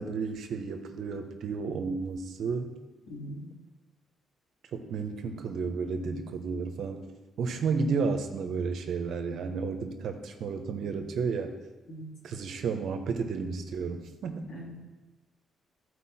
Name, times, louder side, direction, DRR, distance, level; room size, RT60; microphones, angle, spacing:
voice 1, 0.0-2.7 4.7-7.1 7.4-11.6 12.2-14.5, right 5 dB, 70° right, 7 dB, 0.9 m, -32 dB
voice 2, 3.1-3.5 11.9-12.1 14.5-14.7, equal, 75° left, -3 dB, 2.9 m, -41 dB
14.0 x 4.7 x 4.3 m, 1.1 s
cardioid pair, 90°, 0 cm